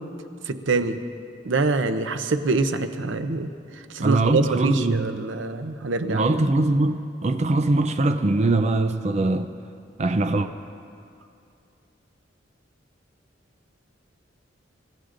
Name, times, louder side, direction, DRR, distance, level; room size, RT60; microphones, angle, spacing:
voice 1, 0.5-1.0 1.5-3.5 3.9-6.2, right 3 dB, 85° right, 0.7 m, -24 dB
voice 2, 4.0-5.2 6.1-9.5 10.0-10.5, right 2 dB, 35° right, 0.5 m, -22 dB
27.0 x 14.5 x 2.6 m
head